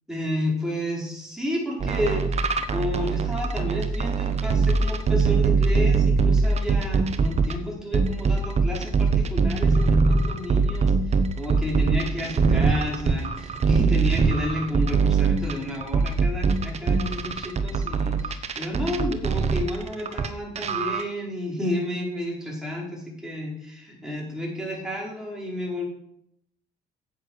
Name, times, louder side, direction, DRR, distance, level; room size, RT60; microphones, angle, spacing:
voice 1, 0.1-25.9, left 1 dB, 5° right, -3 dB, 4.9 m, -31 dB
sound 1, 1.8-7.5 7.9-20.3 20.6-21.0, right 4 dB, 40° right, 1.1 m, -22 dB
10.0 x 8.3 x 6.5 m, 0.74 s
cardioid pair, 110°, 17 cm